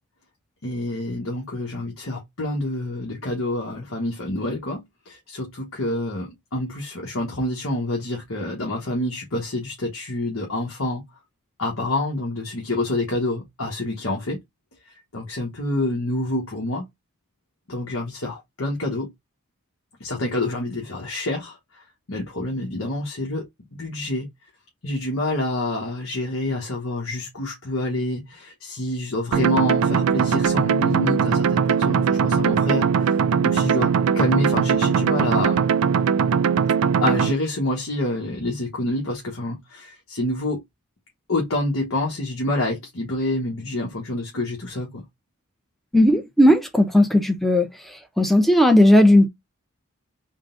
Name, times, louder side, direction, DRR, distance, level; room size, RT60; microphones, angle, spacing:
voice 1, 0.6-11.0 11.6-14.4 15.1-16.8 17.7-19.1 20.0-23.5 23.7-24.3 24.8-35.6 37.0-40.6 41.3-45.0, left 1 dB, 65° left, 1.2 m, -27 dB
sound 1, 29.3-37.3, right 7 dB, 70° right, 0.3 m, -20 dB
voice 2, 45.9-47.7 48.2-49.3, left 1 dB, ahead, 0.6 m, -15 dB
3.8 x 2.2 x 3.8 m
head